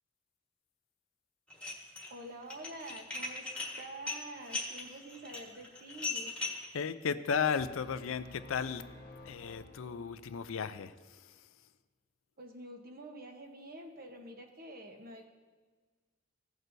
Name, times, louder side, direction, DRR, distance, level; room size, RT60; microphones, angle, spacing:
Dishes pots and pans, 1.5-2.1 2.4-6.7, left 3 dB, 5° left, 1.4 m, -39 dB
voice 1, 2.1-6.4 12.4-15.3, right 1 dB, 45° right, 3 dB, 1.0 m, -47 dB
voice 2, 6.7-8.8 9.2-11.3, left 6 dB, 75° left, 12 dB, 0.4 m, -35 dB
sound 1, 7.6-10.5, left 1 dB, 55° left, 1.2 m, -53 dB
16.0 x 6.2 x 2.7 m, 1.4 s
head